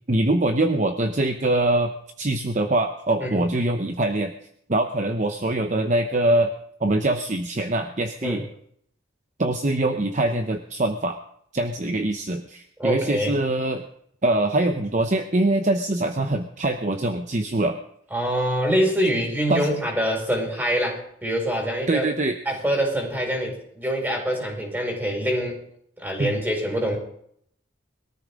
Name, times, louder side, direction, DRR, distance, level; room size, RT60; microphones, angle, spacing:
voice 1, 0.1-1.9 2.2-4.3 4.7-6.5 6.8-8.4 9.4-11.2 11.5-13.8 14.2-17.8 19.5-19.7 21.9-22.3 26.2-26.3, right 2 dB, 35° right, 6 dB, 0.8 m, -23 dB
voice 2, 12.8-13.3 18.1-22.1 22.4-25.6 26.0-27.0, equal, 10° right, 0 dB, 5.3 m, -25 dB
22.0 x 13.5 x 3.7 m, 0.67 s
head